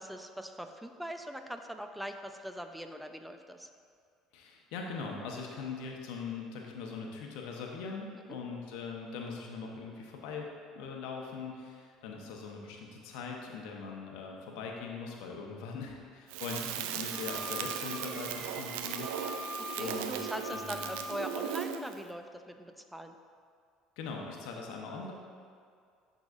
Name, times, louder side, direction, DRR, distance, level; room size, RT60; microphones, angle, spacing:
voice 1, 0.0-3.7 8.1-8.4 19.6-23.2, equal, 5° right, 6 dB, 0.5 m, -42 dB
voice 2, 4.3-10.5 10.7-20.2 20.5-20.9 24.0-25.1, left 5 dB, 75° left, 0 dB, 0.9 m, -41 dB
Crackle, 16.3-22.0, right 9 dB, 80° right, 0.3 m, -37 dB
Wind instrument woodwind instrument, 17.1-21.5, left 2 dB, 35° right, 1.6 m, -44 dB
10.5 x 4.0 x 2.5 m, 2.2 s
hypercardioid pair, 75°, 0 cm